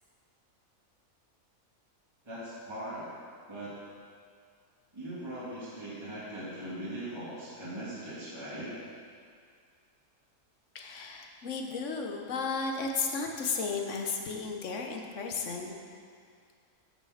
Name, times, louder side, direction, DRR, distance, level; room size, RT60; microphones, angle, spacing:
voice 1, 2.2-3.2 3.5-3.8 4.9-8.8, right 1 dB, 20° right, -9 dB, 2.1 m, -40 dB
voice 2, 10.7-15.8, left 4 dB, 65° left, 3 dB, 1.3 m, -34 dB
8.2 x 6.6 x 6.4 m, 2.2 s
omnidirectional pair, 1.4 m